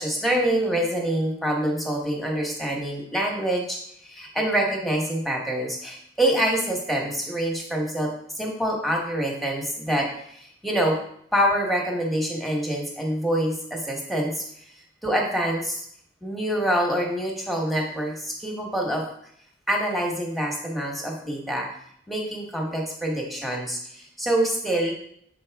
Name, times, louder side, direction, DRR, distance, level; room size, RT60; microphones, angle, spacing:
voice 1, 0.0-3.8 4.1-11.0 11.3-14.4 15.0-15.8 16.2-19.0 19.7-21.7 22.1-24.9, right 1 dB, ahead, 0 dB, 1.1 m, -26 dB
6.8 x 4.2 x 3.4 m, 0.67 s
head